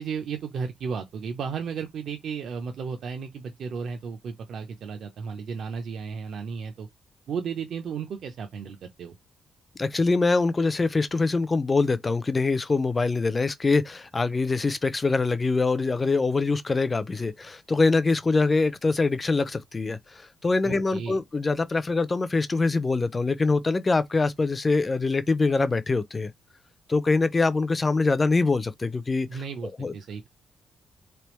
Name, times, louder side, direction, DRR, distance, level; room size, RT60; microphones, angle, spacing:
voice 1, 0.0-6.9 7.3-9.2 20.6-21.2 29.3-30.3, right 6 dB, 60° right, 0.6 m, -34 dB
voice 2, 9.8-26.3 26.9-29.3 29.8-29.9, left 3 dB, 20° left, 0.4 m, -24 dB
3.4 x 3.4 x 3.0 m
cardioid pair, 160°, 0 cm